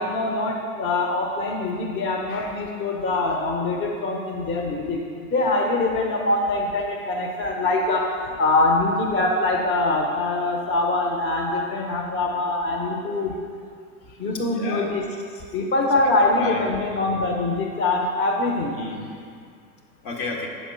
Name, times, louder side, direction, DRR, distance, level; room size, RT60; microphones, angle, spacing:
voice 1, 0.0-13.4 14.2-15.0 15.5-18.8, left 2 dB, 25° left, 0 dB, 1.0 m, -23 dB
voice 2, 14.1-15.4 16.0-16.7 18.7-19.3 20.0-20.5, left 3 dB, 60° left, -1 dB, 1.6 m, -34 dB
7.7 x 4.3 x 7.0 m, 2.2 s
figure-of-eight pair, 85°, 43 cm